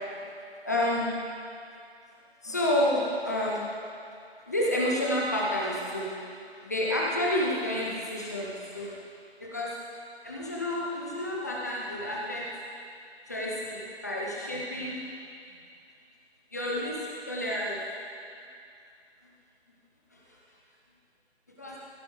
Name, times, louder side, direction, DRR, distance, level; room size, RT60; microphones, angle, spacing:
voice 1, 0.6-1.1 2.4-3.7 4.5-6.2 6.6-9.0 9.4-9.7 10.2-12.4 13.3-15.0 16.5-17.8 20.1-20.2 21.6-21.8, left 1 dB, 15° left, -4 dB, 0.7 m, -29 dB
16.0 x 8.1 x 3.3 m, 2.4 s
figure-of-eight pair, 170°, 32 cm